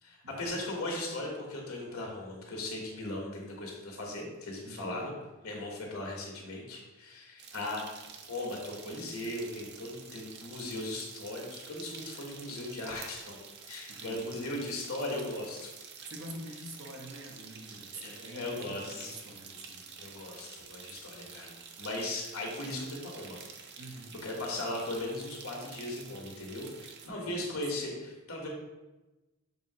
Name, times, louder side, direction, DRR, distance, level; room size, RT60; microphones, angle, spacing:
voice 1, 0.0-5.1 5.4-7.9 8.3-13.4 13.7-15.7 18.0-19.1 20.0-21.5 21.8-23.4 24.2-28.5, left 1 dB, 85° left, -1 dB, 1.7 m, -38 dB
voice 2, 4.6-5.1 13.9-14.4 16.1-19.9 23.8-24.2 27.0-27.6, right 1 dB, 70° right, 1 dB, 1.1 m, -46 dB
sound 1, 7.4-27.1, right 6 dB, 50° right, 0.6 m, -49 dB
7.0 x 2.9 x 4.8 m, 1.1 s
head